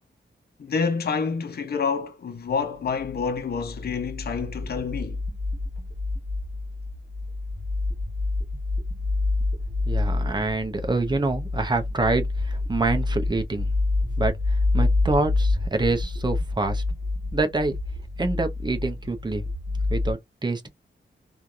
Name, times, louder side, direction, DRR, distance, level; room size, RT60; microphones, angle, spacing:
voice 1, 0.6-5.2, left 5 dB, 55° left, 0.6 m, -28 dB
sound 1, 3.0-20.1, left 2 dB, 50° right, 1.4 m, -28 dB
voice 2, 9.9-13.7 14.2-14.4 14.7-16.8 17.3-17.8 18.2-19.4 19.9-20.7, right 3 dB, 20° right, 0.7 m, -26 dB
3.1 x 2.4 x 2.6 m
wide cardioid pair, 125°, 20 cm